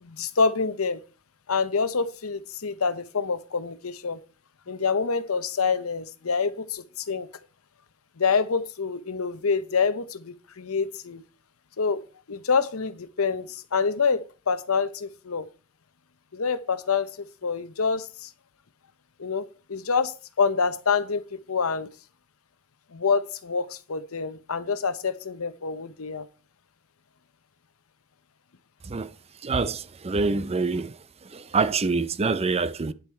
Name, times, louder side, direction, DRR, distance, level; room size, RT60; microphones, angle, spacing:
voice 1, 0.0-1.0 1.5-4.2 4.7-7.3 8.2-11.2 11.8-12.0 12.3-15.5 16.3-18.3 19.2-21.9 22.9-26.3, left 5 dB, 85° left, 0.8 m, -27 dB
voice 2, 29.4-30.9 31.3-32.9, right 4 dB, 30° right, 0.5 m, -25 dB
10.0 x 7.2 x 4.5 m
head